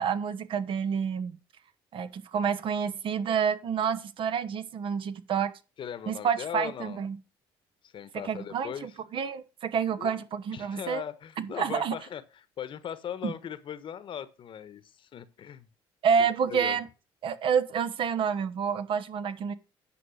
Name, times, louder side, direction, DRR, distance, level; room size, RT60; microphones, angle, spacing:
voice 1, 0.0-1.3 1.9-5.5 6.1-7.2 8.2-11.0 11.4-11.9 13.2-13.3 16.0-16.9 17.2-19.5, right 7 dB, 55° right, 1.0 m, -28 dB
voice 2, 5.8-7.0 7.8-8.9 10.0-10.2 10.5-12.2 12.6-15.7 16.2-16.8, left 9 dB, 50° left, 1.1 m, -39 dB
10.0 x 5.0 x 6.4 m
supercardioid pair, 85°, 11 cm